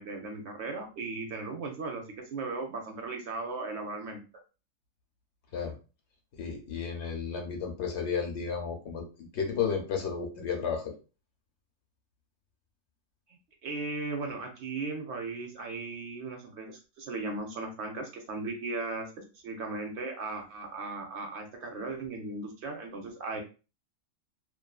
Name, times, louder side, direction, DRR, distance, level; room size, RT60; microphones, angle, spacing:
voice 1, 0.0-4.2 13.6-19.1 19.3-23.4, right 3 dB, 65° right, 3 dB, 0.8 m, -37 dB
voice 2, 6.4-9.0 9.3-10.9, left 6 dB, 65° left, 1 dB, 0.9 m, -32 dB
2.5 x 2.4 x 2.2 m, 0.32 s
omnidirectional pair, 1.4 m